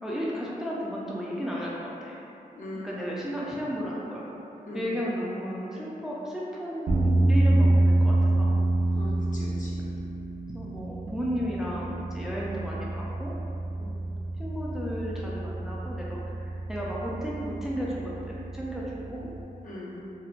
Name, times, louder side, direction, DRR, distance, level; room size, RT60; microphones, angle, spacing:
voice 1, 0.0-2.2 2.8-4.3 4.7-8.6 10.5-13.3 14.4-19.3, equal, 5° right, -5 dB, 0.3 m, -34 dB
voice 2, 2.6-3.1 4.7-4.9 8.9-9.9 13.8-13.9 19.6-20.0, left 1 dB, 55° left, -7 dB, 0.7 m, -40 dB
sound 1, 6.9-19.4, right 2 dB, 60° right, 0.5 m, -27 dB
4.4 x 2.0 x 2.4 m, 2.8 s
wide cardioid pair, 110°, 15 cm